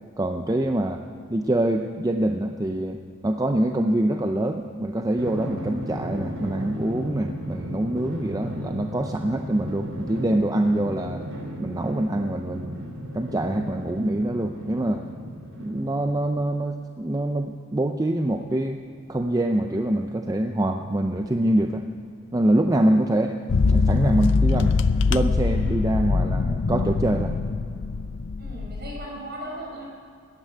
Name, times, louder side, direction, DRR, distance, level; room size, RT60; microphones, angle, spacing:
voice 1, 0.2-1.0 1.3-11.3 11.6-12.9 13.1-15.0 15.5-18.8 19.1-21.9 22.3-23.3 23.7-24.7 25.1-27.3, right 1 dB, 15° right, 5 dB, 0.5 m, -25 dB
Drum, 5.2-16.2, equal, 85° right, 3.0 m, -35 dB
voice 2, 22.7-23.1 28.4-29.9, right 1 dB, 50° right, -3 dB, 5.0 m, -37 dB
sound 1, 23.5-29.1, left 4 dB, 60° left, 0.5 m, -23 dB
14.0 x 9.9 x 9.5 m, 2.4 s
head